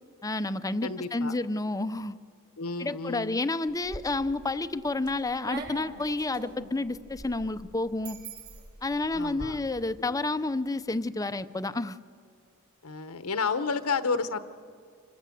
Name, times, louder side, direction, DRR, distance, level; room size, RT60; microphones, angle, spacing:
voice 1, 0.2-2.2 2.8-8.2 8.8-12.0, left 2 dB, 15° left, 12 dB, 0.6 m, -30 dB
voice 2, 0.8-1.3 2.6-3.4 9.1-9.6 10.1-10.3 12.8-14.4, left 4 dB, 80° left, 11 dB, 1.0 m, -31 dB
sound 1, 3.7-4.4 4.8-9.5, right 2 dB, 50° right, 6.2 m, -43 dB
26.0 x 22.0 x 7.7 m, 2.1 s
head